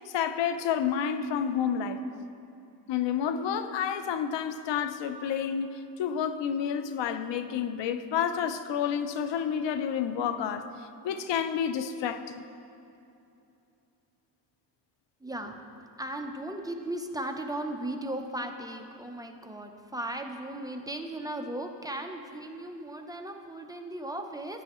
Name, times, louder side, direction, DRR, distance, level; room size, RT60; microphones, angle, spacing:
voice 1, 0.1-2.0 2.9-10.7 11.0-12.4, left 8 dB, 85° left, 10 dB, 0.6 m, -30 dB
voice 2, 15.2-24.6, right 1 dB, 10° right, 4 dB, 0.6 m, -37 dB
15.5 x 8.9 x 3.0 m, 2.8 s
cardioid pair, 110°, 42 cm